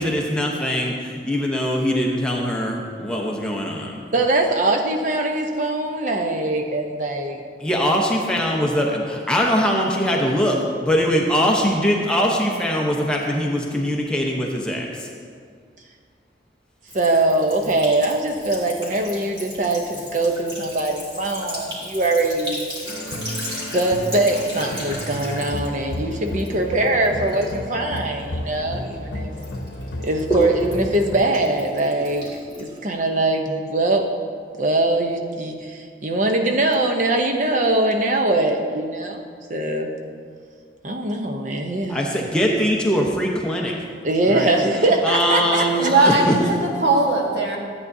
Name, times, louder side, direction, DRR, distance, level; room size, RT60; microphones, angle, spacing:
voice 1, 0.0-4.0 7.6-15.1 41.9-43.7 44.2-44.5 45.0-46.3, equal, 5° left, -2 dB, 0.8 m, -22 dB
voice 2, 4.1-7.4 16.9-22.7 23.7-29.3 30.0-32.3 32.6-34.1 34.6-39.2 39.5-39.9 40.8-42.0 44.0-45.9, right 2 dB, 45° right, 4 dB, 0.7 m, -22 dB
Sink (filling or washing) / Trickle dribble, 16.9-29.0 29.4-33.2, equal, 25° right, 2.1 m, -34 dB
sound 1, 22.9-31.2, left 1 dB, 85° left, 0.8 m, -32 dB
voice 3, 45.8-47.6, right 2 dB, 70° right, -2 dB, 1.5 m, -19 dB
13.5 x 8.6 x 2.7 m, 2.1 s
head